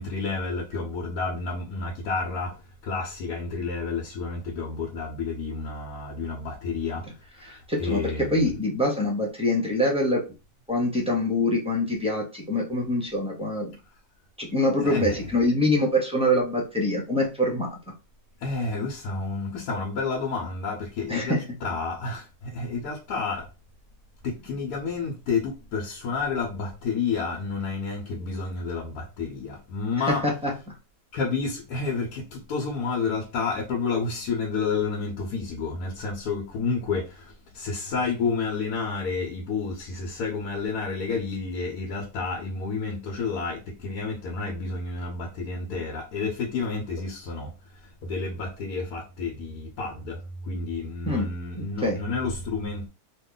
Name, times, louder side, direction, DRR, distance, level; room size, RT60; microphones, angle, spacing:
voice 1, 0.0-2.6 2.8-7.0 7.4-8.5 14.8-15.2 18.4-23.4 24.2-30.2 31.1-47.5 48.0-52.9, left 4 dB, 80° left, 1.3 m, -30 dB
voice 2, 7.4-10.2 10.7-13.7 14.4-17.8 21.1-21.4 30.2-30.7 51.0-51.3 51.6-52.0, left 1 dB, 5° right, 0.5 m, -25 dB
3.0 x 2.3 x 3.7 m
omnidirectional pair, 1.6 m